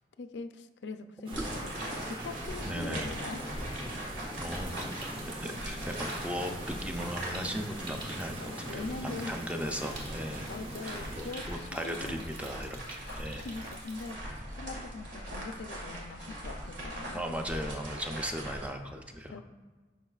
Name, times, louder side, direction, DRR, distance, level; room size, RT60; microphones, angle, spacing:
voice 1, 0.0-3.4 8.4-9.4 10.3-11.5 11.8-12.4 13.0-17.3 19.3-19.4, left 3 dB, 80° left, 9 dB, 0.4 m, -42 dB
sound 1, 1.3-11.3, right 1 dB, 30° right, 0.8 m, -42 dB
sound 2, 1.3-18.7, right 1 dB, 90° right, 1.9 m, -41 dB
voice 2, 2.7-3.1 4.4-10.5 10.8-13.5 17.1-19.4, equal, 5° right, 4 dB, 0.4 m, -37 dB
Stream, 4.4-14.1, right 2 dB, 55° right, 1.3 m, -51 dB
11.5 x 4.5 x 2.4 m, 1.3 s
head